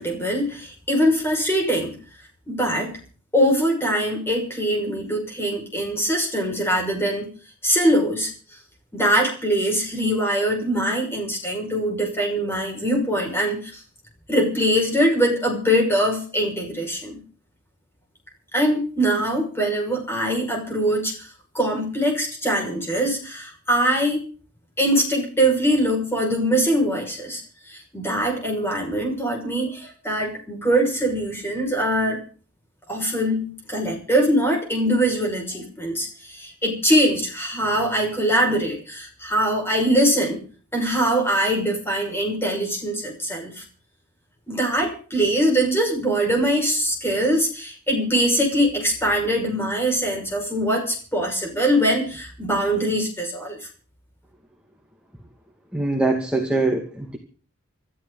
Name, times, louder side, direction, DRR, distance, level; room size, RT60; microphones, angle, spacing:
voice 1, 0.0-2.0 2.5-2.9 3.3-7.3 7.6-8.3 8.9-13.8 14.3-17.2 18.5-21.3 21.5-24.3 24.8-27.4 27.7-32.2 32.9-40.4 40.7-43.6 44.5-53.6, equal, 10° left, 1 dB, 6.0 m, -22 dB
voice 2, 55.7-57.2, right 2 dB, 5° right, 0 dB, 2.3 m, -23 dB
26.0 x 13.0 x 4.1 m, 0.41 s
head